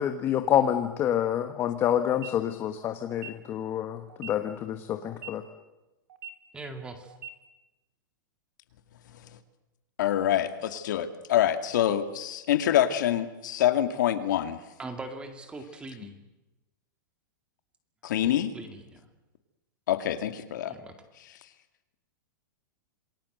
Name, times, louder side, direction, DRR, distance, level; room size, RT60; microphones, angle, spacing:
voice 1, 0.0-5.5, left 10 dB, 20° left, 8 dB, 1.2 m, -27 dB
sound 1, 2.1-2.3 3.1-3.3 4.1-4.3 5.1-5.3 6.1-6.3 7.1-7.3, right 8 dB, 75° right, 3.4 m, -41 dB
voice 2, 6.5-7.1 14.8-16.2 18.5-19.1 20.7-21.0, right 3 dB, 10° right, 6 dB, 2.3 m, -41 dB
voice 3, 10.0-14.6 18.0-18.5 19.9-20.7, left 11 dB, 65° left, 9 dB, 2.2 m, -26 dB
27.5 x 20.5 x 8.0 m, 1.0 s
supercardioid pair, 165°, 11 cm